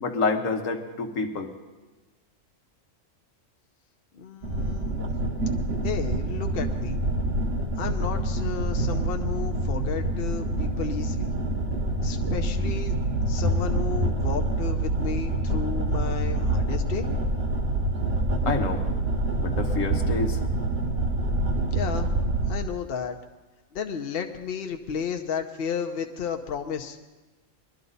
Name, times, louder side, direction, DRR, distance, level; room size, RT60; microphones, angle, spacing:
voice 1, 0.0-1.5 18.5-18.8 19.4-20.4, left 4 dB, 85° left, 4 dB, 1.6 m, -28 dB
voice 2, 4.1-5.0 5.8-7.0 7.7-11.3 12.0-12.9 13.3-17.1 21.7-22.1 22.4-23.2 23.7-27.0, left 6 dB, 50° left, 5 dB, 1.0 m, -33 dB
sound 1, 4.4-22.6, right 1 dB, 50° right, 1.5 m, -26 dB
21.5 x 12.5 x 4.0 m, 1.2 s
omnidirectional pair, 1.3 m